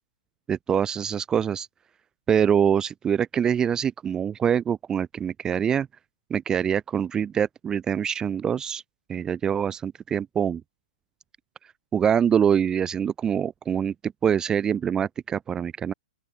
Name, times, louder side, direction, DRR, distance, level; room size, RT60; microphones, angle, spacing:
voice 1, 0.5-1.7 2.3-5.9 6.3-8.8 9.1-10.6 11.9-15.9, right 8 dB, 15° right, 0.5 m, -24 dB
open air
figure-of-eight pair, 120°, 5 cm